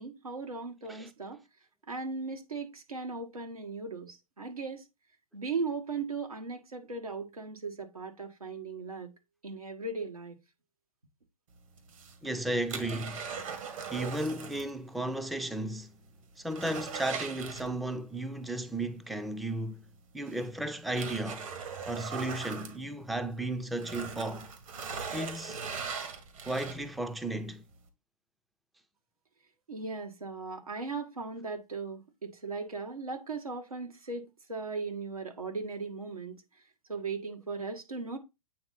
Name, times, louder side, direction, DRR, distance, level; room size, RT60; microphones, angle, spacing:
voice 1, 0.0-1.4 1.9-4.9 5.3-9.1 9.4-10.4 29.7-36.4 36.9-38.2, right 4 dB, 90° right, 1.7 m, -38 dB
sound 1, 11.8-14.8 15.0-15.1 15.6-15.7 16.1-18.1 19.5-19.6 20.3-23.4 23.7-27.1 27.6-27.7, right 6 dB, 70° right, 2.0 m, -40 dB
voice 2, 12.2-13.2 13.9-15.9 16.4-19.8 20.1-21.5 21.9-24.5 25.1-25.6 26.5-27.6, right 1 dB, ahead, 0.4 m, -34 dB
8.6 x 3.8 x 4.1 m
hypercardioid pair, 115°, 18 cm